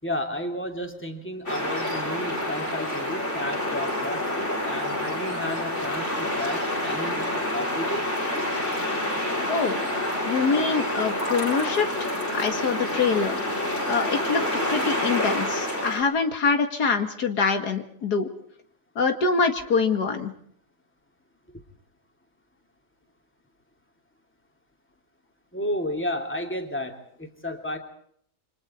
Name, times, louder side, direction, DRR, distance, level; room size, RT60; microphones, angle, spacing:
voice 1, 0.0-8.1 25.5-27.8, left 1 dB, 5° left, 4 dB, 2.9 m, -32 dB
sound 1, 1.5-16.0, left 1 dB, 45° left, 7.1 m, -28 dB
voice 2, 9.5-9.8 10.3-13.6 13.9-14.4 14.7-18.3 19.0-20.3, left 5 dB, 85° left, 6 dB, 2.5 m, -25 dB
29.0 x 25.5 x 4.4 m, 0.64 s
omnidirectional pair, 1.6 m